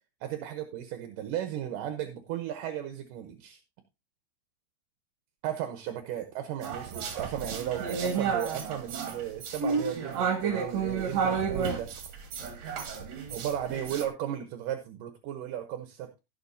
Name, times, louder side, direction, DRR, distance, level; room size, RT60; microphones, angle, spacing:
voice 1, 0.2-3.6 5.4-12.1 13.3-16.2, right 11 dB, 70° right, 8 dB, 2.3 m, -35 dB
sound 1, 6.6-14.1, right 6 dB, 55° right, 2.6 m, -31 dB
16.5 x 7.1 x 2.7 m, 0.26 s
omnidirectional pair, 4.5 m